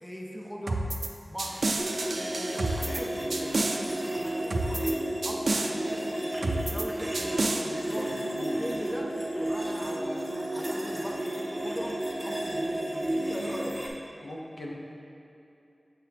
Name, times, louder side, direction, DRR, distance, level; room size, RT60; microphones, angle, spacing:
voice 1, 0.0-1.0 1.3-1.7 2.1-6.1 6.5-13.9, equal, 10° left, -1 dB, 0.7 m, -40 dB
sound 1, 0.7-1.1 1.4-3.0 3.3-3.8 4.5-4.9 5.2-5.7 6.4-6.9 7.1-7.6, right 2 dB, 85° right, 0.4 m, -29 dB
sound 2, 1.4-13.9, equal, 5° right, 1.1 m, -43 dB
sound 3, 1.8-13.7, right 1 dB, 30° right, 0.8 m, -32 dB
voice 2, 7.9-8.6 14.2-14.7, left 1 dB, 75° left, -2 dB, 0.8 m, -40 dB
6.7 x 5.9 x 2.9 m, 2.7 s
wide cardioid pair, 50°, 0 cm